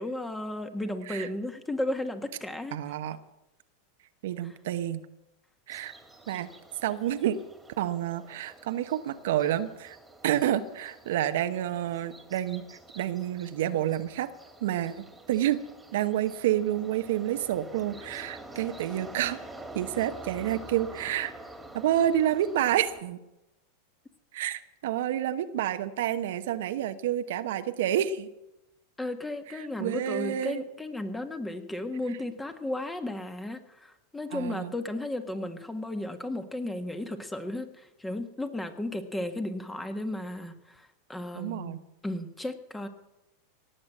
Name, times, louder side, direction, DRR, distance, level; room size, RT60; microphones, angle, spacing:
voice 1, 0.0-2.8 29.0-42.9, left 1 dB, 10° left, 8 dB, 1.6 m, -34 dB
voice 2, 2.7-3.2 4.2-5.0 5.7-5.9 6.3-6.5 6.8-7.4 7.8-10.0 10.2-12.7 12.9-14.3 14.6-15.6 15.9-19.4 19.7-21.3 21.7-23.2 24.3-28.3 29.5-30.6 34.3-34.7 41.4-41.8, right 11 dB, 70° right, 10 dB, 0.9 m, -29 dB
sound 1, 5.7-23.0, right 2 dB, 10° right, 2.3 m, -47 dB
18.0 x 7.7 x 7.7 m, 0.91 s
hypercardioid pair, 105°, 0 cm